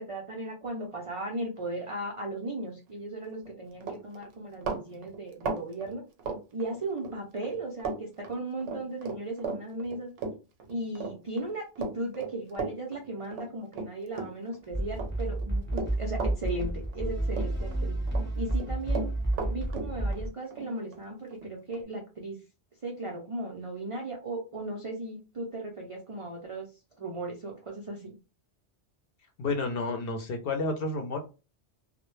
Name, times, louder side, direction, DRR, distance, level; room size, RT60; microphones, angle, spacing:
voice 1, 0.0-6.0 6.5-10.1 10.7-18.0 18.4-19.1 19.5-22.4 22.8-26.7 27.0-28.1, right 2 dB, 60° right, 0 dB, 0.3 m, -36 dB
Run, 3.3-3.5 3.8-7.2 7.4-8.0 8.2-14.6 14.9-17.1 17.3-18.3 18.5-21.8, right 4 dB, 80° right, 0.9 m, -36 dB
sound 1, 14.7-20.3, right 1 dB, 10° left, 0.8 m, -30 dB
voice 2, 29.4-31.2, left 3 dB, 60° left, 5 dB, 0.7 m, -30 dB
2.1 x 2.1 x 3.0 m, 0.31 s
omnidirectional pair, 1.2 m